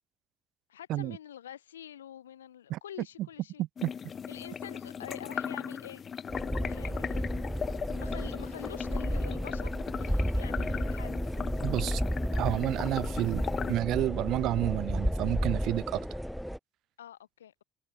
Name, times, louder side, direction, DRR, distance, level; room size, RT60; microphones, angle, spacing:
voice 1, 0.7-3.6 4.3-6.0 6.6-7.3 8.0-9.7 10.0-11.1 17.0-17.6, left 10 dB, 75° left, 0.8 m, -46 dB
voice 2, 3.6-3.9 11.6-12.0 12.4-13.4 13.7-16.1, right 15 dB, 55° right, 0.5 m, -30 dB
sound 1, 3.8-13.7, left 7 dB, 40° left, 1.1 m, -38 dB
sound 2, 6.3-16.6, equal, ahead, 0.5 m, -32 dB
figure-of-eight pair, 55°, 0 cm